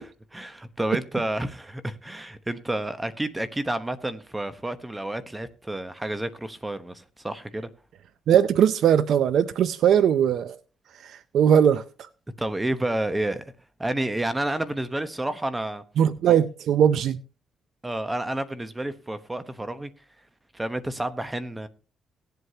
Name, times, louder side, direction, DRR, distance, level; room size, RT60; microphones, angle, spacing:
voice 1, 0.0-7.7 12.4-13.5 13.8-15.8 16.3-16.4 17.8-19.9 20.5-21.7, right 1 dB, 15° right, 1.0 m, -30 dB
voice 2, 8.3-10.6 11.0-11.8 16.0-17.2, right 9 dB, 70° right, 0.5 m, -20 dB
18.5 x 8.0 x 2.8 m
cardioid pair, 90°, 0 cm